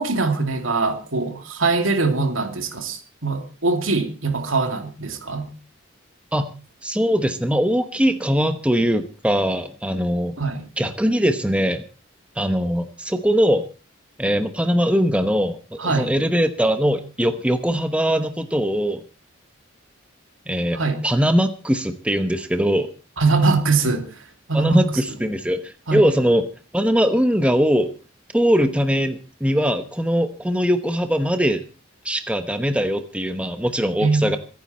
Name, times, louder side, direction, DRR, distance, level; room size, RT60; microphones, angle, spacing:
voice 1, 0.0-5.5 10.4-10.7 15.8-16.1 20.7-21.0 23.2-24.0 24.5-25.0 25.9-26.0 34.0-34.3, right 3 dB, 75° right, 2.7 m, -22 dB
voice 2, 6.8-10.4 10.8-11.8 12.4-13.6 14.2-19.0 20.5-22.9 24.5-26.4 26.7-27.9 28.3-31.6 32.0-34.4, equal, 5° right, 1.0 m, -21 dB
25.5 x 9.6 x 4.3 m
head